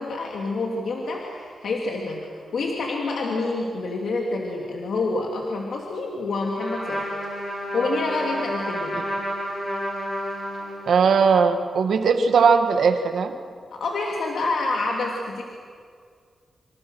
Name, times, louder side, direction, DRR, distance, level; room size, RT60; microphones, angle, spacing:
voice 1, 0.0-7.1 7.7-9.0 13.7-15.4, left 3 dB, 70° left, -1 dB, 2.8 m, -27 dB
Trumpet, 6.6-11.2, equal, 30° left, 7.7 m, -30 dB
voice 2, 10.9-13.3, right 5 dB, 80° right, 6 dB, 1.8 m, -19 dB
27.5 x 26.5 x 6.4 m, 2.1 s
wide cardioid pair, 105°, 0 cm